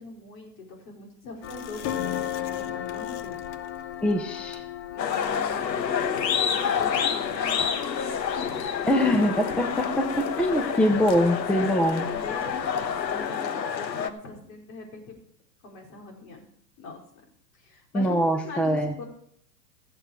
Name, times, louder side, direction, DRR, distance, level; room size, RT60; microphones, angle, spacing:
voice 1, 0.0-3.4 4.8-8.0 8.4-8.7 10.6-11.2 11.5-15.1 15.6-16.5 16.8-17.0 17.5-18.2 18.4-19.1, left 3 dB, 55° left, 0 dB, 4.6 m, -41 dB
sound 1, 1.4-13.3, left 11 dB, 35° left, 0.8 m, -38 dB
voice 2, 4.0-4.6 8.9-9.8 10.2-12.0 17.9-18.9, equal, ahead, 6 dB, 0.6 m, -23 dB
sound 2, 5.0-14.1, left 7 dB, 85° left, 1.2 m, -28 dB
17.5 x 6.9 x 4.9 m, 0.68 s
hypercardioid pair, 115°, 50 cm